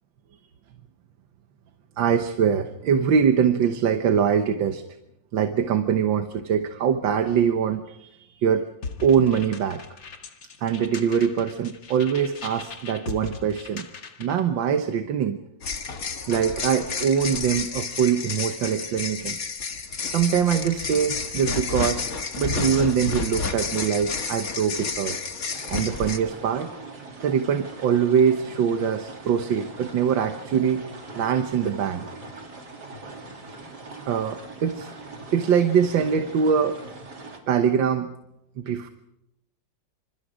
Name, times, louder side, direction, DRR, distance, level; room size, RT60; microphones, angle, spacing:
voice 1, 2.0-4.8 5.3-8.7 9.0-9.8 10.6-13.9 14.2-15.4 16.0-19.4 20.1-22.0 22.4-25.2 25.7-26.7 27.2-30.8 31.2-32.0 34.1-34.9 35.3-36.8 37.5-38.1 38.6-38.9, right 7 dB, 85° right, 7 dB, 1.8 m, -23 dB
sound 1, 8.8-14.5, left 5 dB, 85° left, 2.7 m, -40 dB
sound 2, 15.6-26.2, left 5 dB, 50° left, 2.1 m, -30 dB
sound 3, 25.5-37.4, right 3 dB, 60° right, 3.7 m, -41 dB
27.5 x 26.5 x 5.0 m, 0.84 s
omnidirectional pair, 2.0 m